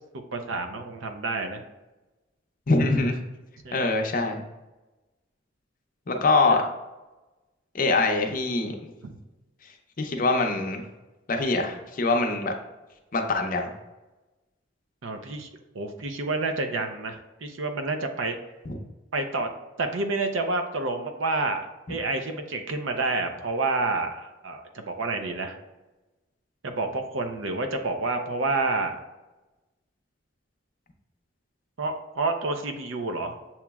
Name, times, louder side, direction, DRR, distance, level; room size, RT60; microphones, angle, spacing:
voice 1, 0.3-1.6 3.6-3.9 6.5-6.6 9.0-9.2 15.0-15.5 15.7-18.4 19.1-19.5 19.8-25.6 26.6-29.0 31.8-33.3, right 3 dB, 85° right, 5 dB, 0.6 m, -29 dB
voice 2, 2.7-3.2 3.7-4.4 6.1-6.6 7.7-8.9 10.0-10.8 11.3-12.5 13.1-13.7 18.7-18.8, left 3 dB, 45° left, 3 dB, 0.6 m, -24 dB
7.1 x 3.0 x 2.3 m, 1.1 s
head